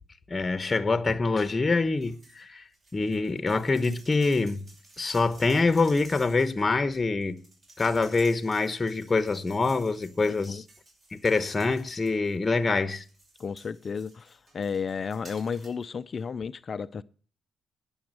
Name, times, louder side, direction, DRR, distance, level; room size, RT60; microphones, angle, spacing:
voice 1, 0.3-2.6 2.9-4.7 5.0-7.4 7.8-10.6 11.1-13.0, left 3 dB, 25° left, 1.0 m, -25 dB
sound 1, 2.0-2.4 2.7-12.5 12.9-15.9 16.2-16.3, right 2 dB, 40° right, 6.0 m, -54 dB
voice 2, 13.4-17.0, left 6 dB, 40° left, 0.5 m, -33 dB
10.5 x 7.2 x 8.8 m
cardioid pair, 90°, 0 cm